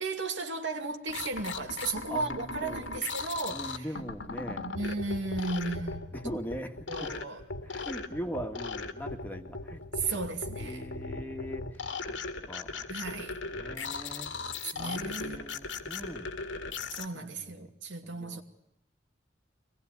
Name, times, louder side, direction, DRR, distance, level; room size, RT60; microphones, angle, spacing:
voice 1, 0.0-3.9 4.6-6.4 6.9-7.4 9.9-10.8 12.9-13.3 14.6-15.4 16.9-18.4, right 3 dB, 80° right, 2.7 m, -35 dB
sound 1, 1.1-17.1, left 3 dB, 90° left, 2.1 m, -38 dB
voice 2, 2.1-2.9 3.5-4.7 6.1-7.1 7.6-9.8 10.6-11.8 12.1-12.2 12.5-12.8 13.5-14.3 14.8-16.3 17.4-17.7 18.0-18.4, equal, 10° left, 2.0 m, -41 dB
24.5 x 19.5 x 9.6 m
head